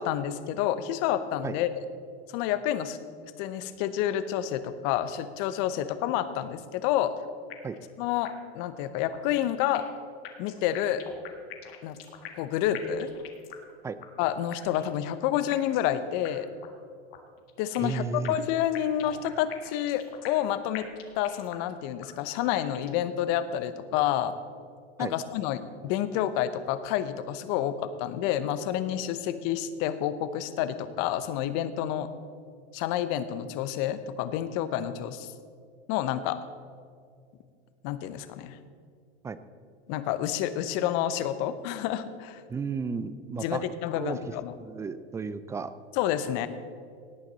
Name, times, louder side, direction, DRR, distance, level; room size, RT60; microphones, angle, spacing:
voice 1, 0.0-1.8 2.3-3.0 3.4-7.1 8.0-9.9 10.4-11.0 11.8-12.0 12.4-13.1 14.2-16.5 17.6-20.9 21.2-24.3 25.0-32.1 32.7-35.3 35.9-36.4 37.8-38.6 39.9-42.4 43.4-44.5 45.9-46.5, left 11 dB, 45° left, 13 dB, 0.9 m, -29 dB
sound 1, 7.5-7.9 8.2-8.3 8.6-8.7 9.1-10.0 10.2-12.5 12.7-13.7 14.0-14.1 14.5-15.0 15.5-15.9 16.2-16.3 16.6-16.7 17.1-18.0 18.2-20.5 20.7-21.7 22.0-22.1 22.5-23.0, left 10 dB, 65° left, 1.7 m, -43 dB
voice 2, 17.8-18.4 25.0-25.1 39.2-39.4 42.5-43.6 44.0-44.2 44.6-45.7, right 5 dB, 10° right, 14 dB, 0.3 m, -33 dB
18.0 x 8.9 x 4.1 m, 2.2 s
hypercardioid pair, 100°, 32 cm